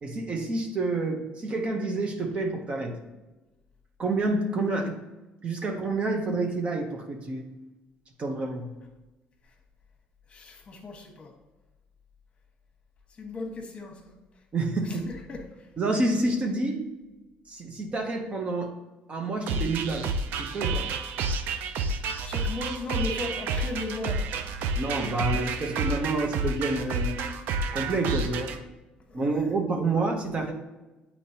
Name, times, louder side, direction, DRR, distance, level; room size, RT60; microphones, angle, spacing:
voice 1, 0.0-3.0 4.0-5.0 5.4-7.5 8.2-8.7 14.5-15.1 15.8-16.9 17.5-18.8 19.1-20.1 20.4-20.9 24.8-27.2 27.7-28.5 29.1-30.5, right 2 dB, 35° right, 3 dB, 0.9 m, -28 dB
voice 2, 10.3-11.3 13.2-14.1 14.8-15.7 22.2-24.3 29.1-29.5, left 2 dB, 35° left, 2 dB, 1.3 m, -36 dB
sound 1, 19.5-28.6, right 3 dB, 75° right, 0.5 m, -30 dB
8.4 x 4.3 x 2.8 m, 1.1 s
cardioid pair, 115°, 3 cm